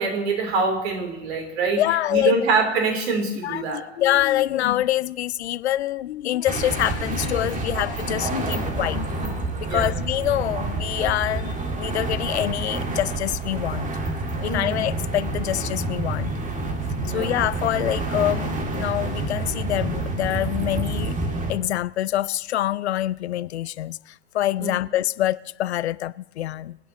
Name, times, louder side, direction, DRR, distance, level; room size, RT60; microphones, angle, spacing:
voice 1, 0.0-1.8 2.1-3.9 9.6-9.9 14.4-14.8 17.0-17.3 24.6-24.8, right 4 dB, 60° right, 3.5 m, -25 dB
voice 2, 1.8-2.5 3.4-13.9 14.4-16.3 17.0-21.2 21.5-26.8, left 13 dB, 65° left, 0.5 m, -25 dB
sound 1, 6.5-21.6, right 2 dB, 20° right, 1.9 m, -28 dB
27.5 x 9.6 x 3.0 m
figure-of-eight pair, 90°, 36 cm